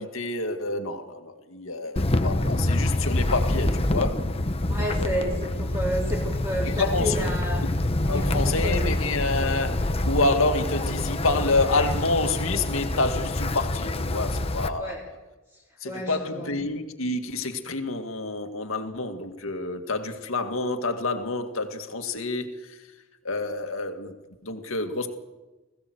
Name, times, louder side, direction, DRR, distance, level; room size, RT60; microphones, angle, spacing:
voice 1, 0.0-4.2 5.0-5.4 6.6-7.2 7.6-7.7 8.1-14.9 15.8-22.8 23.2-24.1 24.4-25.1, left 3 dB, 75° left, 2.0 m, -28 dB
Wind, 2.0-14.7, left 1 dB, 30° left, 0.9 m, -26 dB
voice 2, 4.7-7.7 8.1-8.9 14.8-15.1 15.8-16.5, equal, 15° right, 3.6 m, -31 dB
20.5 x 16.0 x 8.0 m
head